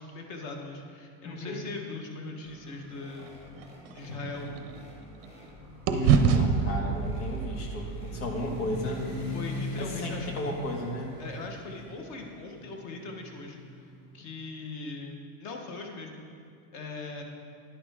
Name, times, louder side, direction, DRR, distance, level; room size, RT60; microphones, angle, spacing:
voice 1, 0.0-3.3 3.9-4.5 9.3-10.3 11.2-16.2 16.7-17.2, left 3 dB, 45° left, 2 dB, 1.2 m, -40 dB
voice 2, 1.2-1.6 5.9-9.0 9.8-11.1, left 1 dB, 85° left, 1 dB, 1.9 m, -33 dB
sound 1, 2.4-10.5, left 1 dB, 15° left, 1.3 m, -50 dB
sound 2, 3.2-5.5 5.9-10.1, right 6 dB, 40° right, 0.6 m, -29 dB
sound 3, 6.5-14.1, left 2 dB, 65° left, 2.3 m, -40 dB
10.0 x 9.7 x 3.6 m, 2.3 s
cardioid pair, 170°, 41 cm